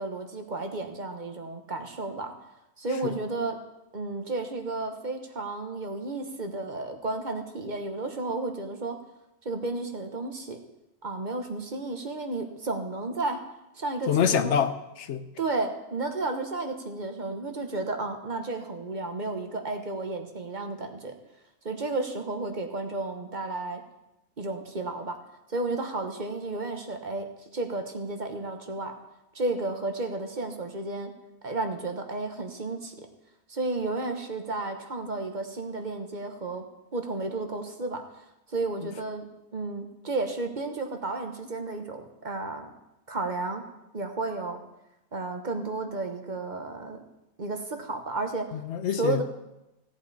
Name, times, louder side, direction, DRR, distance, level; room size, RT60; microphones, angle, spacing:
voice 1, 0.0-2.3 2.8-3.6 3.9-9.0 9.4-10.6 11.0-13.4 13.7-14.5 15.4-21.2 21.6-23.8 24.4-25.2 25.5-27.3 27.5-28.9 29.3-31.1 31.4-32.9 33.5-36.6 36.9-38.0 38.5-39.2 39.5-42.7 43.1-43.6 43.9-44.6 45.1-47.0 47.4-48.5 49.0-49.2, right 2 dB, 45° right, 5 dB, 1.3 m, -32 dB
voice 2, 14.1-15.3 48.5-49.2, left 8 dB, 85° left, 10 dB, 1.1 m, -26 dB
16.5 x 8.3 x 4.2 m, 0.93 s
omnidirectional pair, 1.2 m